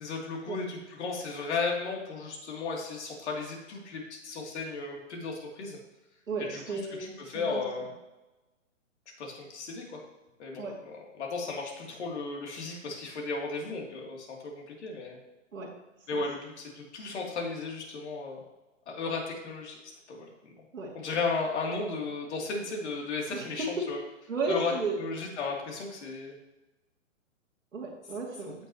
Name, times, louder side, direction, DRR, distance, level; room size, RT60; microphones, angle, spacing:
voice 1, 0.0-5.8 6.5-6.8 7.3-7.9 9.2-10.0 10.4-10.9 11.2-15.2 16.1-18.4 18.9-19.8 20.1-20.3 20.9-24.0 24.5-24.7 25.0-26.3, left 4 dB, 60° left, 0 dB, 3.1 m, -35 dB
voice 2, 6.3-7.6 10.6-10.7 15.5-15.7 16.1-16.2 20.7-20.9 23.3-23.9 24.3-25.0 27.7-28.5, right 3 dB, 90° right, -4 dB, 2.6 m, -34 dB
15.5 x 6.2 x 3.0 m, 1.0 s
hypercardioid pair, 135°, 39 cm